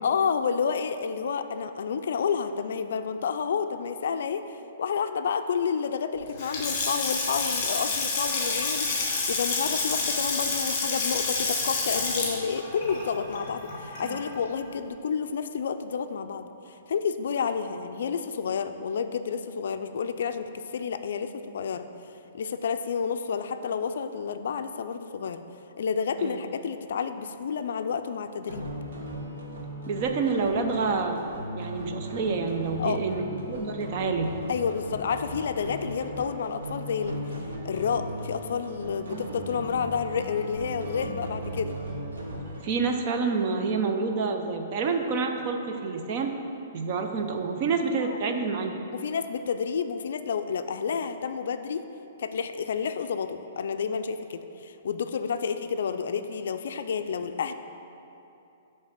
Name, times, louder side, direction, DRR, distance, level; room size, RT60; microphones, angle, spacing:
voice 1, 0.0-16.5 16.9-21.9 22.3-25.4 25.8-28.7 32.8-33.0 34.5-37.2 37.6-41.8 48.0-48.2 48.9-51.9 52.2-57.5, left 6 dB, 65° left, 9 dB, 0.3 m, -30 dB
Water tap faucet / Sink (filling or washing) / Splash splatter, 6.3-14.3, left 3 dB, 30° left, 1.5 m, -28 dB
sound 1, 28.5-42.6, equal, 75° right, 1.4 m, -37 dB
voice 2, 29.9-31.2 31.5-34.3 39.1-39.2 42.6-46.3 46.7-48.7, right 4 dB, 30° right, 5 dB, 0.5 m, -28 dB
9.6 x 3.3 x 5.7 m, 2.8 s
hypercardioid pair, 175°, 0 cm